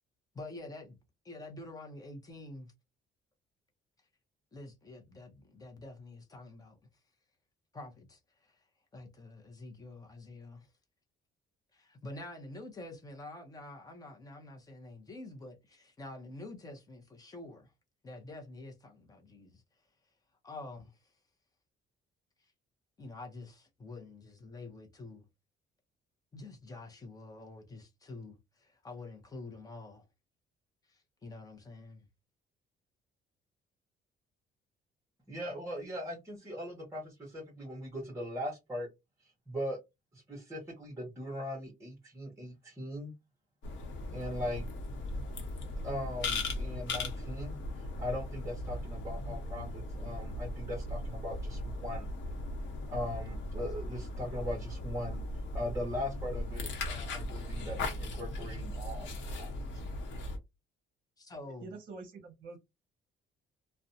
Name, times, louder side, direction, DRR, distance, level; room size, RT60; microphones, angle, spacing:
voice 1, 0.3-1.0 1.2-2.7 4.5-6.8 7.7-8.6 8.9-10.7 11.7-17.7 18.0-19.6 20.4-21.0 23.0-25.2 26.3-30.0 30.9-32.1 61.2-61.7, left 2 dB, 20° left, 0.6 m, -47 dB
voice 2, 35.3-38.9 39.2-39.8 40.1-43.1 44.1-44.6 45.8-52.1 52.9-55.2 55.5-59.8, left 1 dB, 15° right, 0.9 m, -40 dB
sound 1, 43.6-60.4, left 2 dB, 75° left, 0.9 m, -38 dB
voice 3, 61.6-62.6, right 4 dB, 50° right, 0.7 m, -46 dB
2.6 x 2.1 x 2.6 m
cardioid pair, 160°, 19 cm